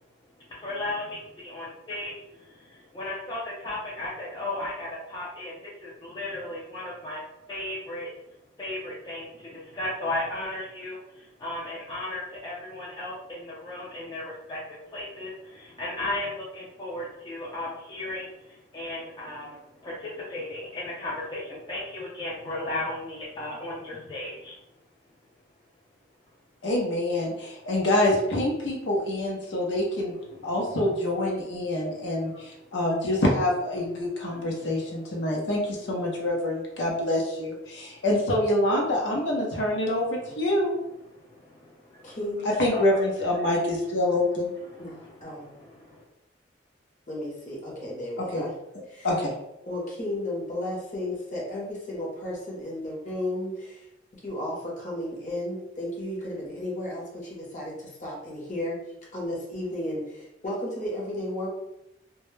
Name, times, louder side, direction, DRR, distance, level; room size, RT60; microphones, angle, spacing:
voice 1, 0.4-7.2 7.5-8.1 8.6-24.6 30.4-30.5 32.7-32.8 34.3-34.7 40.3-40.4 41.2-42.2 42.4-42.8 44.7-46.0, left 1 dB, 20° left, -6 dB, 0.4 m, -36 dB
voice 2, 26.6-30.1 30.4-40.7 42.4-44.5 48.2-48.5 49.0-49.3, left 1 dB, 70° left, -2 dB, 0.6 m, -26 dB
voice 3, 42.0-42.5 44.8-45.5 47.1-48.5 48.9-49.1 49.7-53.8 54.2-58.8 59.1-61.5, left 1 dB, 40° left, -4 dB, 0.8 m, -33 dB
2.2 x 2.0 x 3.1 m, 0.85 s
head